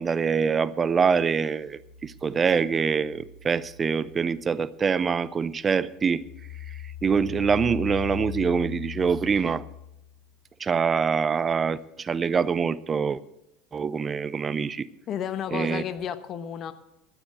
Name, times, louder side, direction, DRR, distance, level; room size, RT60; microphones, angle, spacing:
voice 1, 0.0-6.2 6.7-9.6 10.6-13.2 13.7-14.9 15.5-15.8, right 6 dB, 30° right, 17 dB, 0.7 m, -25 dB
sound 1, 1.5-5.4 5.7-10.3, left 10 dB, 75° left, 2.3 m, -40 dB
voice 2, 15.1-16.7, left 9 dB, 45° left, 12 dB, 1.2 m, -32 dB
12.0 x 9.7 x 7.9 m, 0.87 s
hypercardioid pair, 80°, 0 cm